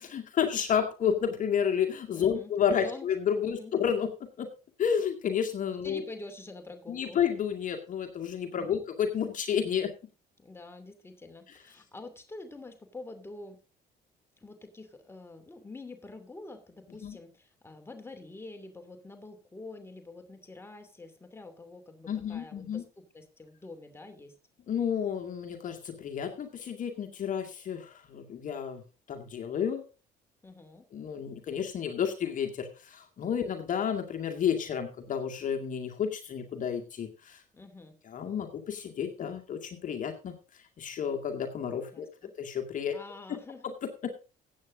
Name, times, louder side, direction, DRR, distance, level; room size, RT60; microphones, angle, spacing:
voice 1, 0.0-4.5 4.8-6.0 6.9-9.9 17.0-17.2 22.1-22.8 24.7-28.8 29.1-29.8 30.9-37.4 38.1-40.3 40.8-42.1 42.4-42.9 43.6-43.7 44.0-44.1, left 8 dB, 50° left, 4 dB, 2.1 m, -31 dB
voice 2, 2.2-3.1 3.4-3.7 5.7-7.2 8.5-8.8 10.4-13.6 14.4-24.4 30.4-30.8 37.5-38.0 41.9-42.3 42.9-43.7, left 2 dB, 15° left, 6 dB, 2.7 m, -46 dB
15.0 x 8.6 x 3.9 m, 0.33 s
cardioid pair, 110°, 17 cm